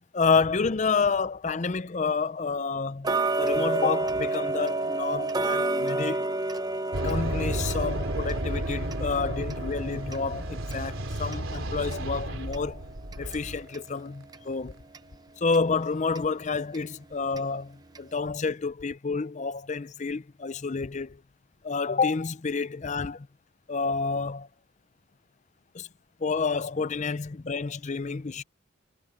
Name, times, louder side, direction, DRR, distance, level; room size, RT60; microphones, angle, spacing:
voice 1, 0.0-6.3 7.0-12.8 13.2-14.7 15.4-21.2 21.6-23.3 23.7-24.5 25.7-25.9 26.2-28.4, left 4 dB, 35° left, 0.5 m, -29 dB
Tick-tock, 3.0-13.9 14.3-14.4 14.9-15.0 15.5-15.6 16.2-16.3 16.7-16.8 17.4-17.5 18.0-18.1, right 2 dB, 20° right, 0.7 m, -31 dB
sound 1, 6.9-13.7, right 1 dB, 80° right, 3.3 m, -32 dB
head